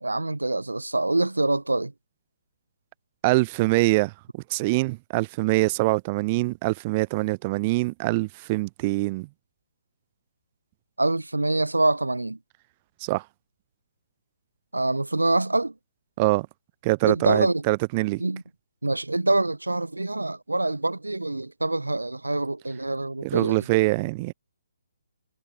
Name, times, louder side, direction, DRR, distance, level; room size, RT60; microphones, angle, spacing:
voice 1, 0.0-1.9 11.0-12.4 14.7-15.7 17.1-17.6 18.2-18.4 18.8-23.7, right 2 dB, 75° right, 0.6 m, -25 dB
voice 2, 3.2-4.1 4.5-9.3 13.0-13.2 16.2-16.5 16.8-18.2 23.2-24.3, right 23 dB, 25° right, 0.3 m, -24 dB
figure-of-eight pair, 135°, 0 cm